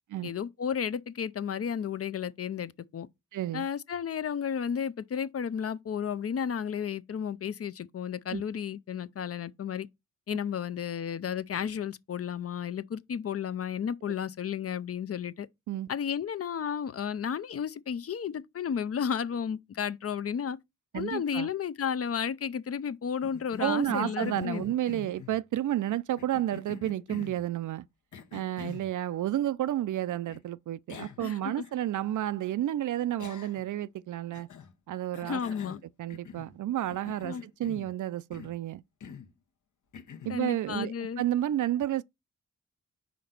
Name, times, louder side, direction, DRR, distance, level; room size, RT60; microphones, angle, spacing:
voice 1, 0.2-3.1 3.5-9.9 10.3-15.5 15.9-20.6 20.9-24.7 31.2-31.6 35.2-35.8 37.2-37.4 40.3-41.2, left 7 dB, 50° left, 0.5 m, -33 dB
voice 2, 3.3-3.7 8.3-8.4 15.7-15.9 20.9-21.5 23.6-27.9 28.3-34.5 34.9-35.4 36.0-38.8 40.2-42.0, right 12 dB, 70° right, 0.5 m, -31 dB
Cough, 23.2-25.4 26.2-27.4 28.1-28.9 30.3-30.4 30.9-31.3 31.6-31.7 33.2-33.8 34.3-34.7 35.1-36.6 36.9-37.9 38.3-38.6 39.0-39.3 39.9-40.4, left 7 dB, 70° left, 1.0 m, -44 dB
5.1 x 3.9 x 5.8 m
cardioid pair, 55°, 31 cm